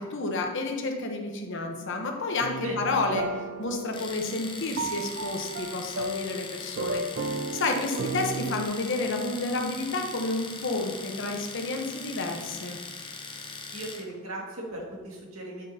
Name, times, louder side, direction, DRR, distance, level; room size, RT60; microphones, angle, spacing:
voice 1, 0.0-3.3 3.6-12.8, left 3 dB, 60° left, 3 dB, 1.0 m, -30 dB
sound 1, 2.4-8.7, right 3 dB, 55° right, 0.3 m, -34 dB
Domestic sounds home sounds, 3.9-14.1, left 4 dB, 25° left, 0.6 m, -41 dB
voice 2, 7.7-8.1 13.7-15.6, right 1 dB, 75° right, -2 dB, 2.0 m, -38 dB
8.5 x 7.3 x 2.8 m, 1.4 s
head